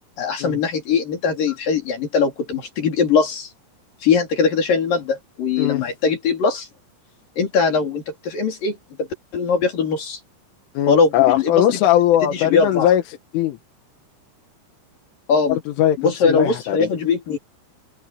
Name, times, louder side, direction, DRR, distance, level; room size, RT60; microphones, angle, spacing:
voice 1, 0.2-3.5 4.0-6.7 7.4-9.1 9.3-10.2 10.9-11.6 12.3-12.9 15.3-15.6 16.0-17.4, left 5 dB, 45° left, 5.1 m, -21 dB
voice 2, 10.8-13.0 13.3-13.6 15.5-16.9, left 12 dB, 80° left, 4.0 m, -19 dB
omnidirectional pair, 5.7 m